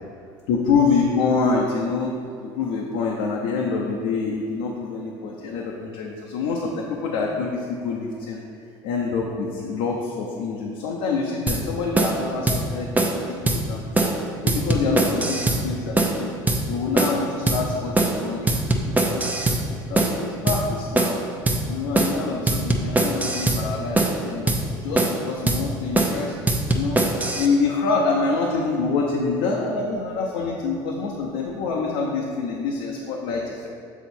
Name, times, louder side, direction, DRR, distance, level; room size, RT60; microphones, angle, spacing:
voice 1, 0.5-2.1 2.4-8.4 8.8-14.1 14.4-16.3 16.7-21.2 21.7-24.6 24.8-26.4 26.7-27.0 27.4-33.7, left 4 dB, 80° left, -2 dB, 0.8 m, -26 dB
sound 1, 11.5-11.6 12.0-12.2 12.5-12.6 13.0-13.2 13.5-13.6 14.0-14.2 14.5-15.6 16.0-16.2 16.5-16.6 17.0-17.2 17.5-17.6 18.0-18.2 18.5-19.6 20.0-20.2 20.5-20.6 21.0-21.2 21.5-21.6 22.0-22.2 22.5-23.6 24.0-24.2 24.5-24.6 25.0-25.2 25.5-25.6 26.0-26.2 26.5-27.5, right 2 dB, 15° right, 0.8 m, -21 dB
7.2 x 4.0 x 4.4 m, 2.4 s
supercardioid pair, 80°, 11 cm